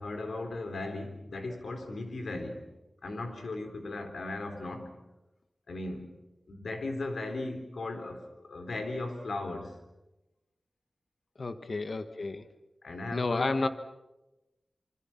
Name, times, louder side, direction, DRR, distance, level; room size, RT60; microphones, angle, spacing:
voice 1, 0.0-2.8 3.0-5.0 5.7-6.2 6.5-9.8 12.8-13.7, left 2 dB, 85° left, 6 dB, 3.8 m, -37 dB
voice 2, 11.4-12.5 13.1-13.7, left 3 dB, 60° left, 9 dB, 1.5 m, -31 dB
27.5 x 25.5 x 5.9 m, 0.98 s
wide cardioid pair, 70°, 0 cm